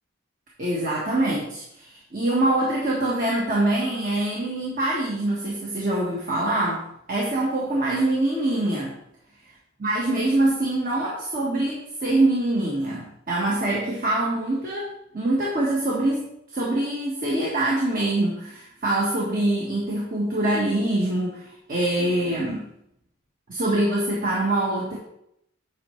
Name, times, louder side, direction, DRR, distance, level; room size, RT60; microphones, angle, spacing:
voice 1, 0.6-6.8 7.1-8.9 9.8-16.3 16.5-22.6 23.5-25.0, right 1 dB, 40° right, -5 dB, 1.3 m, -24 dB
8.5 x 5.7 x 3.2 m, 0.77 s
head